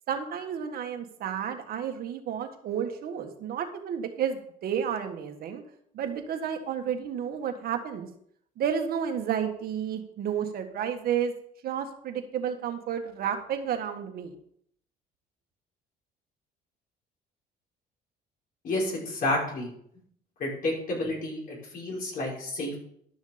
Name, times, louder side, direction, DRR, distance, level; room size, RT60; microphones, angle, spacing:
voice 1, 0.1-5.6 5.9-8.1 8.6-11.3 11.6-14.4, right 8 dB, 65° right, 5 dB, 1.6 m, -31 dB
voice 2, 18.6-19.7 20.4-22.7, left 1 dB, 60° left, -3 dB, 5.4 m, -30 dB
12.0 x 6.4 x 5.2 m, 0.67 s
cardioid pair, 110°, 17 cm